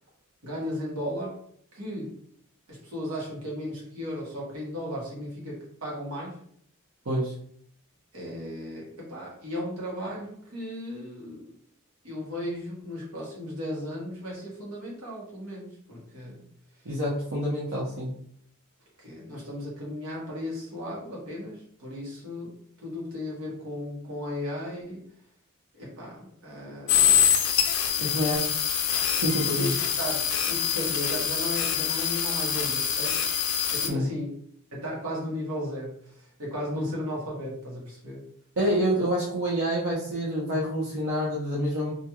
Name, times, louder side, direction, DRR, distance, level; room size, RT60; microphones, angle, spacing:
voice 1, 0.4-1.4 1.7-2.2 2.7-6.4 8.1-11.5 12.0-16.4 19.0-25.0 25.7-27.3 28.0-28.4 29.6-33.2 33.7-34.4 34.7-38.2, left 1 dB, 80° right, -3 dB, 1.2 m, -35 dB
voice 2, 16.8-18.1 28.0-28.5 29.1-29.7 33.9-34.0 38.6-41.9, equal, 65° right, -6 dB, 0.7 m, -27 dB
sound 1, 26.9-33.9, left 8 dB, 65° left, 0.4 m, -25 dB
2.5 x 2.3 x 2.9 m, 0.64 s
head